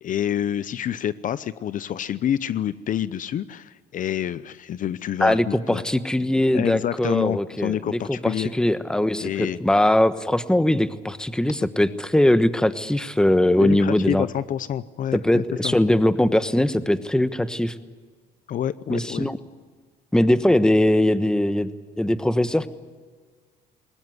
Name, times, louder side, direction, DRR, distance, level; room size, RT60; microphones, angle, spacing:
voice 1, 0.0-5.8 6.5-8.5 9.2-9.6 13.6-15.7 18.5-19.3, left 10 dB, 50° left, 16 dB, 0.7 m, -27 dB
voice 2, 5.2-14.3 15.1-17.7 18.9-19.4 20.1-21.7 22.0-22.7, left 1 dB, 5° left, 13 dB, 1.2 m, -21 dB
21.0 x 19.5 x 9.6 m, 1.5 s
cardioid pair, 110°, 17 cm